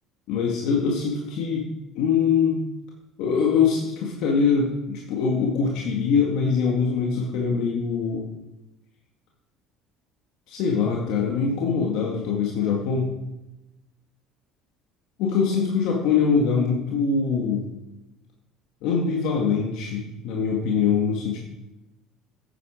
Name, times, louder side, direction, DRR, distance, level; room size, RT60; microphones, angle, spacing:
voice 1, 0.3-1.6 2.0-2.6 3.2-8.3 10.5-13.1 15.2-17.7 18.8-21.4, left 5 dB, 70° left, -1 dB, 1.9 m, -23 dB
9.7 x 8.6 x 5.0 m, 0.96 s
hypercardioid pair, 80°, 0 cm